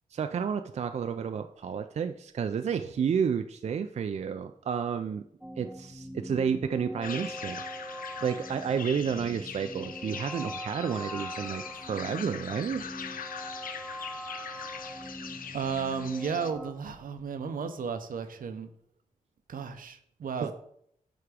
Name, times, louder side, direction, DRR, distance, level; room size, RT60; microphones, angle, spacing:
voice 1, 0.1-5.2 5.6-7.6 8.2-12.8 20.4-20.5, right 7 dB, 50° right, 8 dB, 0.4 m, -31 dB
sound 1, 5.4-16.7, equal, ahead, 0.7 m, -42 dB
sound 2, 7.0-16.5, left 7 dB, 85° left, 0.6 m, -41 dB
voice 2, 15.5-18.7 19.5-20.5, right 6 dB, 80° right, 8 dB, 0.8 m, -33 dB
9.3 x 3.6 x 5.0 m, 0.70 s
wide cardioid pair, 125°, 14 cm